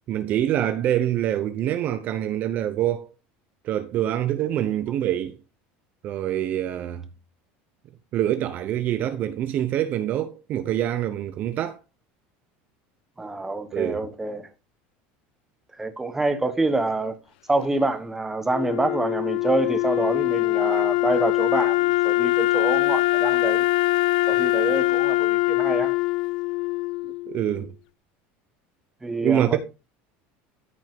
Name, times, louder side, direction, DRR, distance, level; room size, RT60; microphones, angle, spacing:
voice 1, 0.1-3.1 3.6-5.4 6.0-7.0 8.1-11.8 13.7-14.0 27.0-27.7 29.2-29.6, right 11 dB, 35° right, 0.7 m, -25 dB
voice 2, 13.2-14.5 15.7-17.2 17.5-23.7 24.3-25.9 29.0-29.6, right 2 dB, 5° right, 1.1 m, -26 dB
Wind instrument woodwind instrument, 18.5-27.6, left 19 dB, 90° left, 0.5 m, -23 dB
13.5 x 5.3 x 3.6 m
cardioid pair, 170°, 5 cm